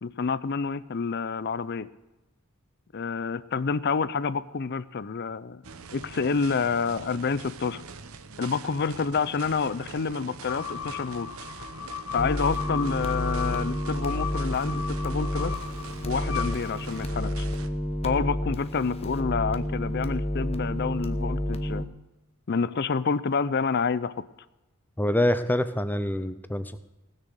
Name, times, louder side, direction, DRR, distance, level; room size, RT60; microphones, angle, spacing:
voice 1, 0.0-1.9 2.9-5.6 5.9-7.8 8.4-11.3 12.1-15.5 16.1-17.5 18.0-21.8 22.5-24.2, left 5 dB, 50° left, 16 dB, 0.5 m, -28 dB
sound 1, 5.6-17.7, right 4 dB, 80° right, 0.9 m, -43 dB
sound 2, 10.5-17.2, left 7 dB, 70° left, 0.9 m, -37 dB
sound 3, 12.2-21.9, equal, 30° left, 0.9 m, -30 dB
voice 2, 25.0-26.8, left 1 dB, 10° left, 11 dB, 0.6 m, -25 dB
19.0 x 6.6 x 6.3 m, 1.0 s
head